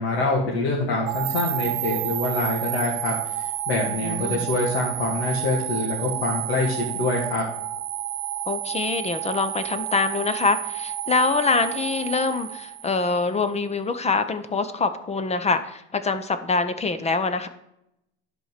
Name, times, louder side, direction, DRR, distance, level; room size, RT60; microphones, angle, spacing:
voice 1, 0.0-7.4, left 2 dB, 85° left, -3 dB, 2.1 m, -25 dB
sound 1, 1.1-13.2, right 14 dB, 60° right, 0.8 m, -30 dB
voice 2, 4.0-4.4 8.5-17.5, left 4 dB, 20° left, 10 dB, 0.8 m, -25 dB
11.0 x 4.4 x 6.7 m, 0.81 s
supercardioid pair, 95°, 30 cm